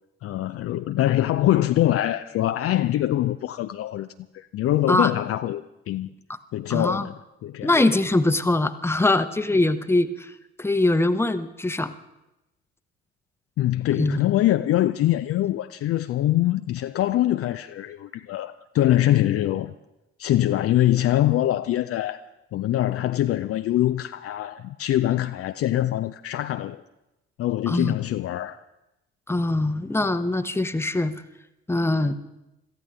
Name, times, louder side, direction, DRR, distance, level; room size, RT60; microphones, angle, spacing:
voice 1, 0.2-4.1 4.3-6.1 6.5-7.1 7.4-7.7 13.6-19.7 20.2-22.2 22.5-26.8 27.4-28.6, left 13 dB, 45° left, 0.5 m, -23 dB
voice 2, 6.7-7.1 7.6-10.3 10.6-11.9 14.0-14.2 27.7-27.9 29.3-31.1 31.7-32.2, left 2 dB, 5° left, 1.0 m, -22 dB
26.0 x 14.5 x 3.5 m
figure-of-eight pair, 45°, 34 cm